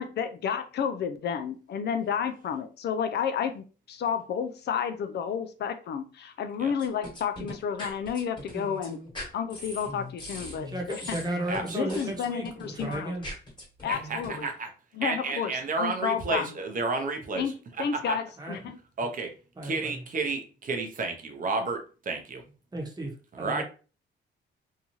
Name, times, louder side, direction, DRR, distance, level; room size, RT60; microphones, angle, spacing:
voice 1, 0.0-9.0 9.3-11.0 11.7-13.1 13.8-14.5 15.0-15.5 15.8-16.5 17.4-17.5 17.8-18.8, left 7 dB, 55° left, 0.4 m, -31 dB
sound 1, 6.8-14.5, left 1 dB, 25° left, 1.4 m, -40 dB
voice 2, 10.7-13.3 18.4-18.6 19.6-20.0 22.7-23.6, right 1 dB, 20° right, 1.0 m, -34 dB
voice 3, 11.5-12.1 13.9-14.7 15.0-18.2 19.0-19.3 19.6-22.4 23.3-23.6, right 3 dB, 45° right, 0.7 m, -31 dB
2.7 x 2.3 x 2.9 m
cardioid pair, 90°, 20 cm